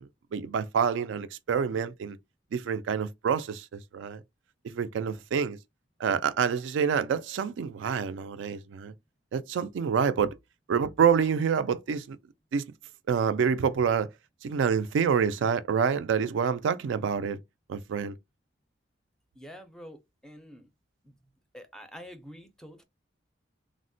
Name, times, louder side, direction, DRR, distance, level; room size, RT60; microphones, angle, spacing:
voice 1, 0.0-2.2 2.5-4.2 4.6-5.6 6.0-8.9 9.3-10.3 10.7-12.2 12.5-12.7 13.1-14.1 14.4-17.4 17.7-18.2, right 6 dB, 75° right, 0.3 m, -27 dB
voice 2, 19.4-20.7 21.0-21.1 21.5-22.8, equal, 5° left, 0.4 m, -47 dB
3.5 x 2.0 x 2.6 m
head